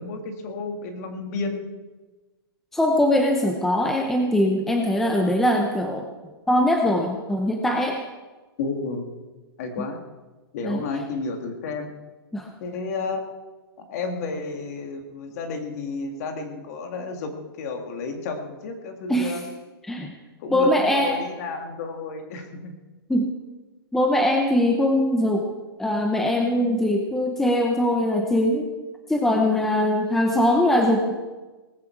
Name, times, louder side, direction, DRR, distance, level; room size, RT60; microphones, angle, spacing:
voice 1, 0.0-1.6 8.6-9.1 9.6-10.0 10.5-11.9 12.6-13.2 13.8-19.4 20.4-22.7, left 4 dB, 40° left, 4 dB, 2.2 m, -31 dB
voice 2, 2.7-6.1 6.5-8.0 10.6-10.8 12.3-12.5 19.1-19.4 19.9-20.1 20.5-21.2 23.1-23.3 23.9-25.5 25.8-28.7 29.1-31.2, left 1 dB, ahead, 2 dB, 0.8 m, -21 dB
19.0 x 15.0 x 4.7 m, 1.2 s
hypercardioid pair, 165°, 13 cm